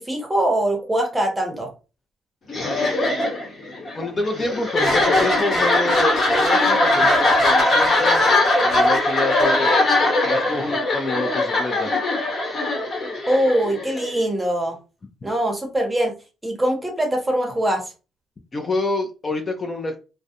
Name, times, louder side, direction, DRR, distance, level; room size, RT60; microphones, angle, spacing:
voice 1, 0.0-1.7 13.3-14.8 15.2-16.2 16.4-17.9, right 1 dB, 15° right, 3 dB, 0.8 m, -22 dB
sound 1, 2.5-14.2, left 2 dB, 50° left, 1.2 m, -20 dB
voice 2, 2.6-3.1 3.9-8.2 8.6-9.8 10.3-11.9 18.5-20.0, left 2 dB, 30° left, 4 dB, 0.5 m, -27 dB
2.3 x 2.1 x 2.8 m, 0.31 s
cardioid pair, 90°, 0 cm